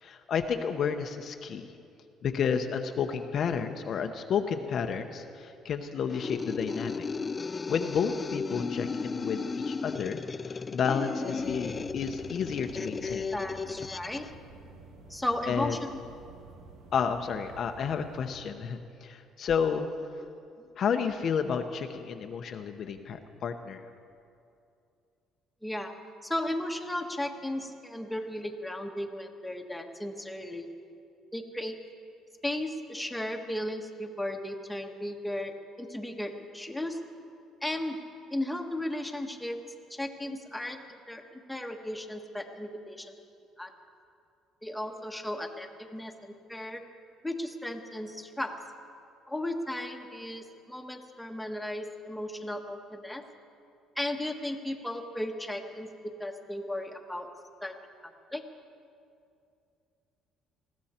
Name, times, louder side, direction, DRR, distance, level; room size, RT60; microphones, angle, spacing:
voice 1, 0.0-1.7 2.2-7.1 7.7-10.2 10.5-13.3 15.5-15.8 16.9-19.9 20.8-23.8, left 6 dB, 55° left, 6 dB, 0.8 m, -31 dB
sound 1, 6.1-14.3, left 4 dB, 25° left, 0.4 m, -35 dB
sound 2, 11.4-18.3, right 3 dB, 75° right, 1.6 m, -50 dB
voice 2, 13.3-14.2 15.1-15.8 25.6-25.9 26.2-30.7 31.3-31.8 32.4-37.0 37.6-38.0 38.3-39.6 39.9-40.8 41.1-41.2 41.5-43.1 43.6-43.7 44.6-46.8 47.2-48.6 49.3-53.2 54.0-55.9 56.2-57.3 57.6-57.7 58.3-58.4, left 1 dB, 5° left, 2 dB, 1.4 m, -35 dB
20.0 x 15.5 x 4.4 m, 2.5 s
cardioid pair, 105°, 0 cm